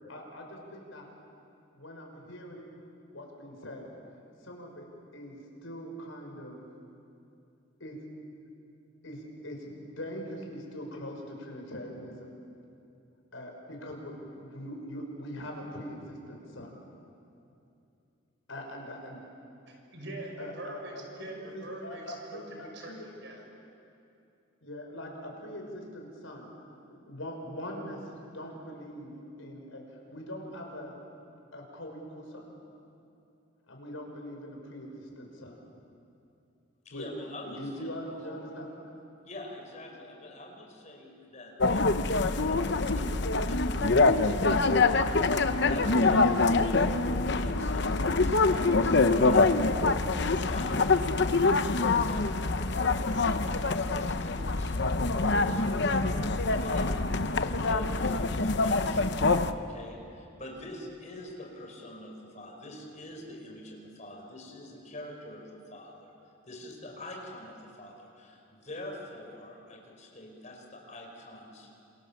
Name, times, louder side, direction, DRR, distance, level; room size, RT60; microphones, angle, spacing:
voice 1, 0.1-1.1 1.7-2.8 3.1-3.9 4.4-4.9 5.1-6.6 7.8-8.0 9.0-12.3 13.3-16.7 18.5-19.2 20.4-23.0 24.6-26.5 26.9-28.0 28.3-29.1 29.4-29.8 30.1-30.9 31.5-32.5 33.7-35.6 36.9-37.1 37.6-38.7 39.9-40.0, equal, 75° left, 1 dB, 5.9 m, -42 dB
voice 2, 19.7-22.0 22.3-23.4, right 1 dB, 60° right, 0 dB, 6.8 m, -43 dB
voice 3, 36.9-38.5 39.3-44.0 44.4-51.0 51.4-54.8 55.2-57.1 57.6-59.2 59.5-66.1 66.5-71.7, left 1 dB, 35° left, 1 dB, 5.3 m, -45 dB
sound 1, 41.6-59.5, left 3 dB, 55° left, 0.9 m, -25 dB
28.5 x 28.0 x 7.4 m, 2.7 s
head